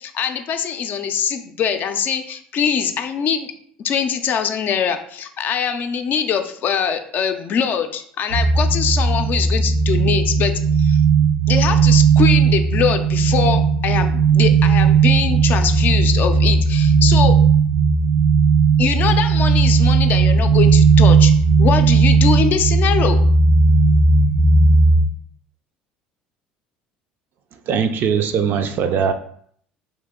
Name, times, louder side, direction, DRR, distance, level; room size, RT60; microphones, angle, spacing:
voice 1, 0.0-3.5 3.8-10.5 10.8-11.0 11.5-17.4 18.8-21.3 21.6-23.2, left 7 dB, 50° left, 7 dB, 0.4 m, -22 dB
sound 1, 8.3-25.0, right 5 dB, 85° right, 0.8 m, -15 dB
voice 2, 27.7-29.1, right 7 dB, 55° right, 8 dB, 0.4 m, -20 dB
2.9 x 2.7 x 3.5 m, 0.62 s
hypercardioid pair, 75°, 4 cm